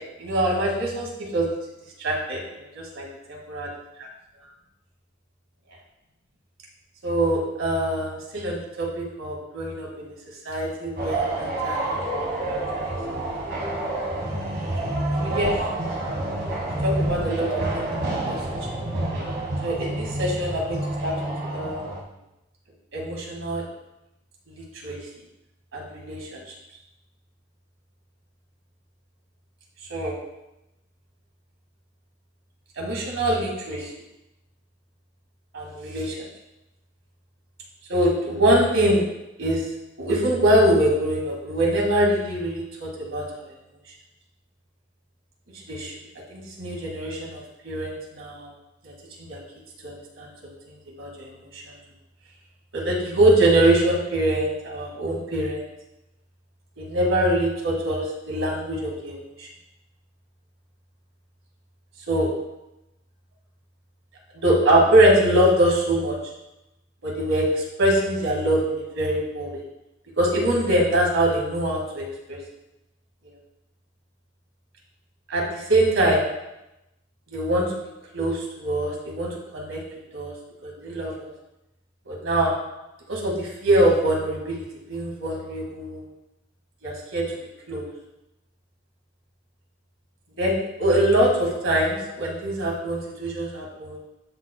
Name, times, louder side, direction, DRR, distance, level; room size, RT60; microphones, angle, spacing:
voice 1, 0.2-1.5 2.0-2.4 2.8-3.7 4.0-4.1 7.0-10.1 10.5-13.0 15.2-15.5 16.8-17.5 17.7-18.4 18.7-18.8 19.6-21.9 22.9-23.6 24.8-25.0 25.7-26.4 29.9-30.1 32.8-33.9 35.5-36.2 37.9-39.0 39.4-39.6 40.0-43.2 45.7-45.9 46.3-48.5 48.8-48.9 49.3-49.4 49.8-50.3 51.0-51.6 52.7-55.6 56.8-59.5 62.1-62.3 64.4-66.2 67.0-69.6 70.2-72.4 75.3-76.2 77.3-77.7 78.1-79.8 80.1-80.3 80.6-81.3 82.1-82.5 83.1-84.6 84.9-86.0 86.8-87.2 87.7-87.8 90.4-94.0, right 1 dB, 75° right, -1 dB, 1.9 m, -23 dB
sound 1, 11.0-22.0, right 2 dB, 50° right, 1.4 m, -28 dB
12.0 x 4.3 x 2.2 m, 0.91 s
head